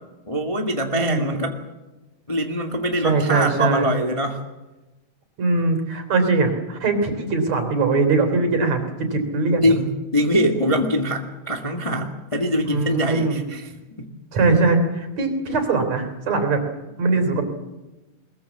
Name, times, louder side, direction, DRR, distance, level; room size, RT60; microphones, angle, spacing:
voice 1, 0.3-1.6 2.3-4.4 9.6-13.7 14.0-14.1, equal, 15° left, 2 dB, 1.5 m, -23 dB
voice 2, 0.9-1.4 3.0-3.9 5.4-9.7 12.6-13.4 14.3-16.6 17.0-17.4, right 3 dB, 60° right, 6 dB, 4.6 m, -21 dB
22.0 x 21.0 x 7.4 m, 1.1 s
omnidirectional pair, 3.5 m